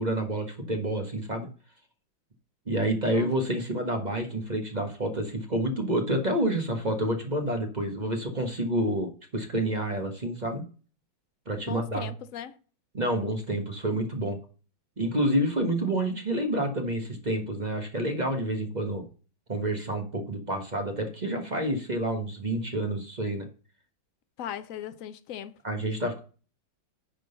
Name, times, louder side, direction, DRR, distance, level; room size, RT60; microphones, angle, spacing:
voice 1, 0.0-1.5 2.7-10.6 11.5-12.1 12.9-14.4 15.0-19.0 19.5-23.4 25.6-26.2, right 1 dB, 25° right, 1.2 m, -28 dB
voice 2, 11.7-12.6 24.4-25.6, left 10 dB, 65° left, 0.8 m, -38 dB
10.0 x 3.9 x 6.7 m
omnidirectional pair, 2.1 m